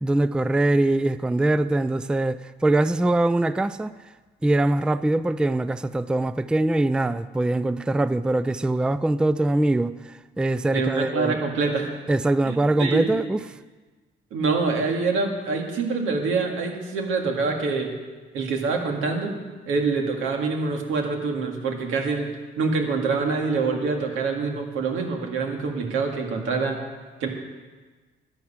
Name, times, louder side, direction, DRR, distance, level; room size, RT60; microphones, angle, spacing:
voice 1, 0.0-4.0 4.4-11.4 12.1-13.4, right 2 dB, 5° right, 0.3 m, -23 dB
voice 2, 10.7-12.0 12.4-13.1 14.3-17.9 18.3-19.3 19.7-22.3 22.6-26.8 27.2-27.3, right 4 dB, 90° right, 2.0 m, -25 dB
11.0 x 9.3 x 7.3 m
cardioid pair, 90°, 20 cm